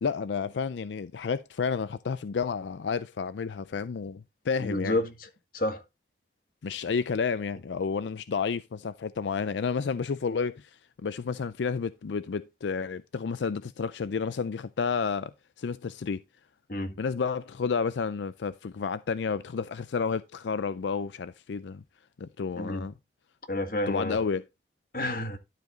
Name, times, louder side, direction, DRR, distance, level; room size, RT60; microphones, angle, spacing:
voice 1, 0.0-5.0 6.6-16.2 17.0-21.8 22.2-22.9 23.9-24.4, left 5 dB, 90° left, 0.4 m, -31 dB
voice 2, 4.6-5.3 5.5-5.8 16.7-17.0 22.6-22.9 23.5-24.2 24.9-25.4, left 1 dB, 50° left, 1.8 m, -30 dB
12.0 x 5.1 x 3.8 m
head